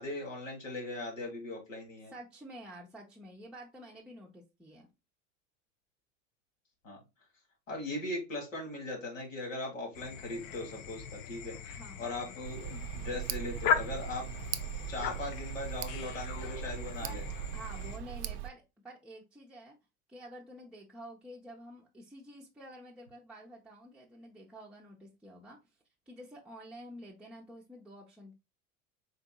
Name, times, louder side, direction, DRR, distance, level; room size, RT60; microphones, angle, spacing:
voice 1, 0.0-2.1 6.8-7.0 7.7-14.3 14.9-17.2, left 2 dB, 90° left, 1.6 m, -39 dB
voice 2, 2.1-4.9 11.7-12.1 17.0-17.2 17.5-19.8 20.1-25.6 26.1-28.3, right 1 dB, 5° right, 0.6 m, -49 dB
sound 1, 9.9-18.0, left 7 dB, 45° left, 0.6 m, -38 dB
Tick, 12.4-18.5, right 11 dB, 60° right, 0.5 m, -39 dB
3.9 x 3.5 x 2.2 m
hypercardioid pair, 80°, 38 cm